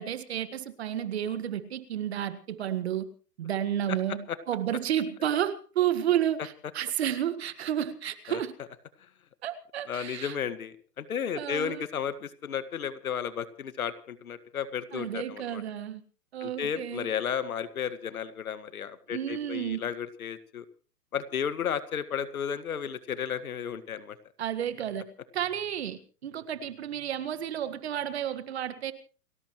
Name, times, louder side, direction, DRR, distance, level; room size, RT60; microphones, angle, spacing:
voice 1, 0.0-3.1 3.4-8.5 9.4-10.4 11.3-11.8 14.9-16.0 16.3-17.1 19.1-19.8 24.4-25.1 25.3-28.9, right 10 dB, 40° right, 12 dB, 1.8 m, -31 dB
voice 2, 9.9-15.6 16.4-20.6 21.1-24.2, left 8 dB, 60° left, 13 dB, 1.9 m, -33 dB
29.5 x 13.5 x 3.1 m, 0.38 s
hypercardioid pair, 160°, 47 cm